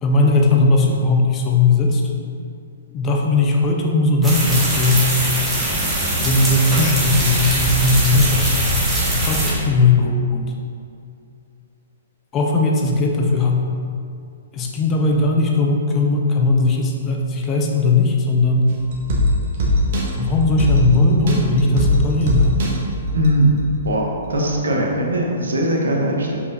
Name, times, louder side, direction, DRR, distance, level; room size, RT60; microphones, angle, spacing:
voice 1, 0.0-2.0 2.9-5.1 6.2-8.5 9.1-10.5 12.3-13.8 14.5-18.7 20.2-22.6, left 3 dB, 25° left, 1 dB, 0.7 m, -18 dB
sound 1, 4.2-9.5, right 1 dB, 10° right, 1.5 m, -21 dB
sound 2, 18.7-23.9 24.2-24.3, left 1 dB, 50° right, 1.3 m, -21 dB
voice 2, 23.1-26.4, right 1 dB, 70° right, -1 dB, 1.1 m, -20 dB
5.4 x 5.1 x 3.9 m, 2.4 s
figure-of-eight pair, 120°, 0 cm